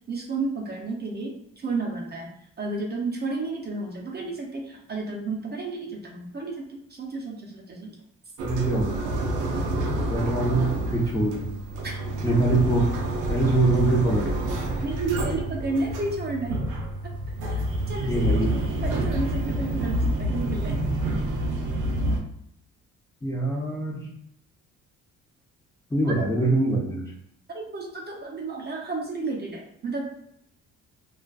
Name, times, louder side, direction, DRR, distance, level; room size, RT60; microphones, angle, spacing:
voice 1, 0.1-8.0 11.8-11.9 14.8-16.6 17.4-17.6 17.9-20.8 26.1-26.2 27.5-30.2, right 3 dB, 35° right, -1 dB, 0.6 m, -32 dB
sound 1, 8.4-22.2, right 1 dB, 85° right, 0.6 m, -28 dB
voice 2, 8.5-9.1 10.1-11.5 12.2-12.9 13.3-14.4 18.1-18.5 23.2-24.1 25.9-27.0, right 2 dB, 10° left, -3 dB, 0.6 m, -24 dB
2.4 x 2.4 x 2.3 m, 0.74 s
cardioid pair, 90°, 30 cm